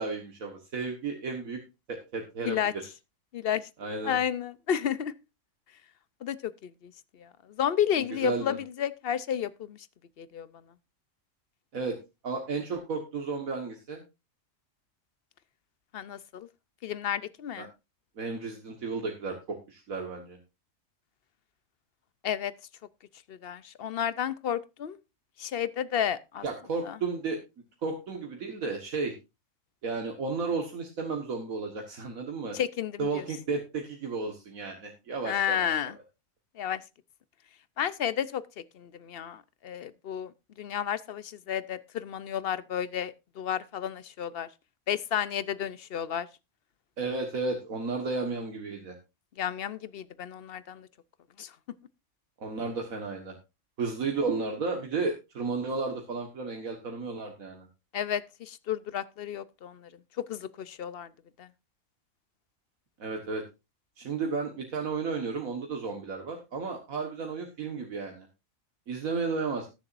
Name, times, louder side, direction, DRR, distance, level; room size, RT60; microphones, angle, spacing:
voice 1, 0.0-1.6 1.9-2.9 3.8-4.2 8.0-8.6 11.7-12.0 12.2-14.0 17.6-17.7 18.2-20.4 26.4-27.4 27.8-29.1 29.8-32.6 33.0-35.7 47.0-49.0 52.4-53.4 53.8-57.7 63.0-63.4 64.0-68.3 68.9-69.7, right 4 dB, 80° right, 1.9 m, -33 dB
voice 2, 3.3-3.7 4.0-5.1 6.2-6.9 7.2-9.8 10.2-10.5 15.9-16.5 16.8-17.7 22.2-22.5 23.3-25.0 25.4-26.4 26.9-27.0 32.5-33.2 35.2-35.9 36.6-36.8 37.8-38.4 38.7-40.3 40.6-44.5 44.9-46.3 49.4-50.9 51.4-51.5 57.9-59.9 60.3-61.1 61.4-61.5, left 9 dB, 55° left, 0.8 m, -32 dB
20.0 x 7.0 x 2.5 m
omnidirectional pair, 1.4 m